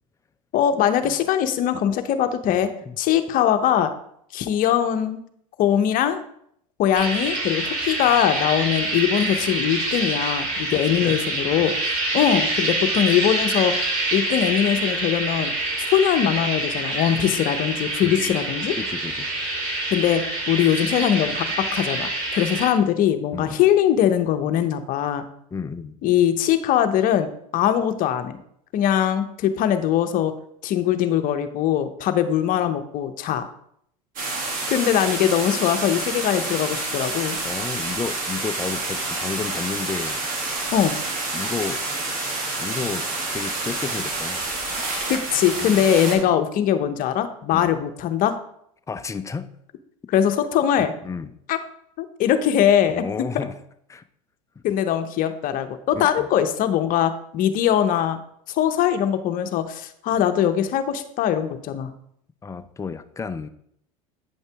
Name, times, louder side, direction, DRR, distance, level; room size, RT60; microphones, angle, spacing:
voice 1, 0.5-2.7 3.0-4.0 4.3-5.2 5.6-6.2 6.8-15.5 15.8-18.8 19.9-25.2 26.0-28.4 28.7-30.3 30.6-33.4 34.7-37.4 40.7-41.0 45.1-48.4 50.1-50.9 51.5-51.6 52.0-53.1 53.3-53.4 54.6-58.2 58.5-61.9, left 10 dB, 45° left, 9 dB, 0.8 m, -21 dB
voice 2, 2.5-3.0 10.7-11.2 11.6-11.7 18.0-18.3 18.8-19.3 23.3-23.6 25.5-26.0 37.4-40.3 41.3-41.8 42.6-44.5 45.6-45.9 46.1-46.3 47.5-47.8 48.9-49.5 50.8-51.3 52.9-53.6 53.9-54.0 55.9-56.3 62.4-63.5, left 5 dB, 15° left, 10 dB, 0.5 m, -32 dB
sound 1, 6.9-22.7, right 2 dB, 65° right, 2.4 m, -26 dB
sound 2, 34.2-46.2, right 2 dB, 45° right, 2.1 m, -28 dB
8.5 x 5.4 x 3.5 m, 0.70 s
hypercardioid pair, 90°, 19 cm